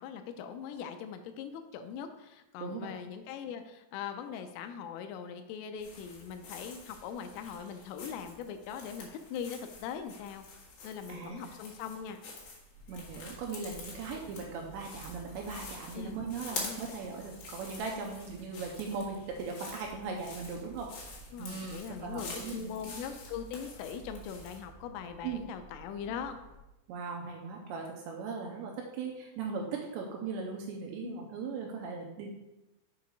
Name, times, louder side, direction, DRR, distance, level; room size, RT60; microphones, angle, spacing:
voice 1, 0.0-10.4 10.8-12.2 16.0-16.2 16.5-16.8 21.3-26.4 31.0-31.2, left 7 dB, 85° left, 7 dB, 3.2 m, -41 dB
voice 2, 2.6-2.9 11.1-11.4 12.9-21.0 21.4-22.8 25.2-25.5 26.9-32.4, right 5 dB, 90° right, 1 dB, 2.5 m, -39 dB
sound 1, 5.8-24.6, left 4 dB, 60° left, 3.0 m, -47 dB
sound 2, 12.7-26.6, right 4 dB, 60° right, 1.7 m, -54 dB
7.4 x 4.7 x 5.2 m, 0.98 s
omnidirectional pair, 5.9 m